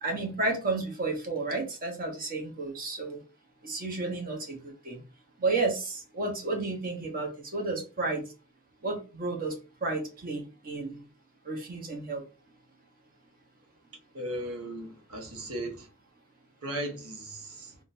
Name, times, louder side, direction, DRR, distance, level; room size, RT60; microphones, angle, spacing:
voice 1, 0.0-3.2 3.6-5.0 5.4-8.2 8.8-11.0 11.4-12.2, right 3 dB, 40° right, 0.9 m, -32 dB
voice 2, 14.1-15.9 16.6-17.8, right 1 dB, 75° right, 0.9 m, -37 dB
3.6 x 2.2 x 2.6 m
head